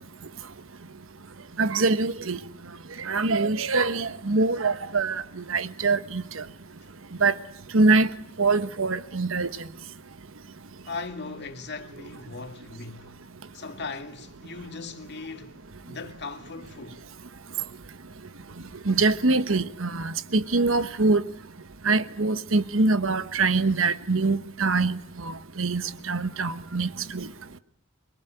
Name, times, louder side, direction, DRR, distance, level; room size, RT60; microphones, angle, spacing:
voice 1, 1.6-2.4 3.1-5.2 5.5-6.2 7.2-7.3 7.7-8.1 8.4-9.5 18.9-21.2 21.9-25.0 25.6-25.8 26.1-26.9 27.1-27.2, right 3 dB, 75° right, 1.2 m, -23 dB
voice 2, 10.9-13.2 13.5-15.6 15.9-17.0, left 4 dB, 55° left, 2.1 m, -38 dB
24.5 x 22.0 x 9.1 m
head